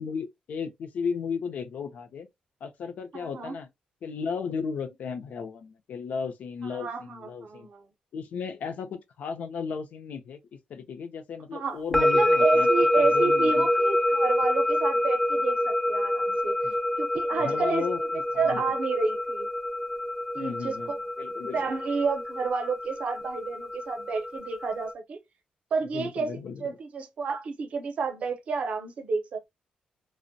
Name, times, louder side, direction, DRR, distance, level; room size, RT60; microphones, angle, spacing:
voice 1, 0.0-2.3 2.6-3.7 4.0-7.7 8.1-12.7 13.0-13.7 16.6-16.7 17.4-18.0 18.4-18.6 20.4-20.9 21.2-21.6 25.9-26.7, left 6 dB, 70° left, 0.5 m, -34 dB
voice 2, 3.1-3.6 6.6-7.9 11.5-16.5 17.0-18.1 18.4-19.5 20.3-21.0 21.5-25.2 25.7-29.5, right 4 dB, 55° right, 0.6 m, -30 dB
sound 1, 11.9-24.9, left 1 dB, 5° left, 0.4 m, -26 dB
2.5 x 2.0 x 2.5 m
wide cardioid pair, 150°, 3 cm